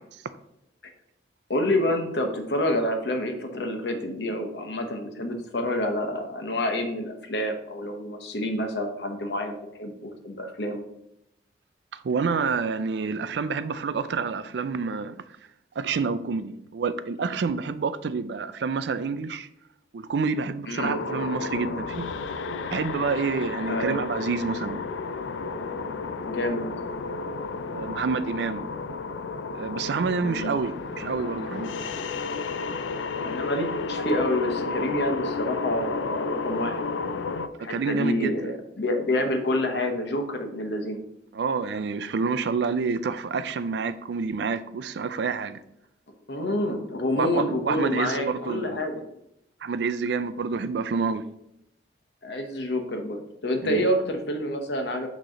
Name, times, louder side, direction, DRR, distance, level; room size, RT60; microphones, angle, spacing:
voice 1, 1.5-10.9 20.7-20.9 23.7-24.0 26.2-26.6 30.2-30.5 33.2-36.8 37.6-41.0 46.3-49.0 52.2-55.1, left 1 dB, 70° left, 0.9 m, -28 dB
voice 2, 11.9-15.2 15.8-19.5 19.9-22.1 22.7-24.8 26.0-26.4 27.7-28.7 29.5-31.9 37.6-38.5 41.3-45.6 47.2-48.8 49.6-51.2 53.6-53.8, right 5 dB, 70° right, 0.4 m, -28 dB
sound 1, 20.8-37.5, left 4 dB, 90° left, 0.4 m, -32 dB
6.3 x 3.1 x 5.6 m
head